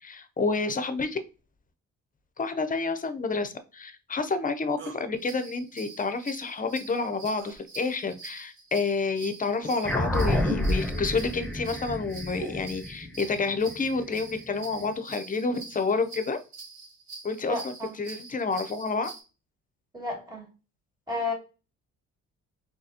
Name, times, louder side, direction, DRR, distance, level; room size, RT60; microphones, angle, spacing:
voice 1, 0.0-1.2 2.4-16.4 17.2-17.7 18.0-19.1, left 4 dB, 25° left, 10 dB, 0.6 m, -29 dB
sound 1, 4.8-5.1 7.4-7.6 9.0-9.1 9.6-9.9 11.9-12.7, right 1 dB, 40° right, 1.0 m, -42 dB
sound 2, 5.2-19.2, right 4 dB, 70° right, 1.7 m, -45 dB
sound 3, 9.8-14.6, left 1 dB, 5° left, 0.9 m, -29 dB
voice 2, 17.5-18.0 19.9-20.5 21.1-21.3, left 2 dB, 15° right, -2 dB, 2.2 m, -32 dB
4.0 x 2.8 x 2.7 m, 0.31 s
cardioid pair, 90°, 30 cm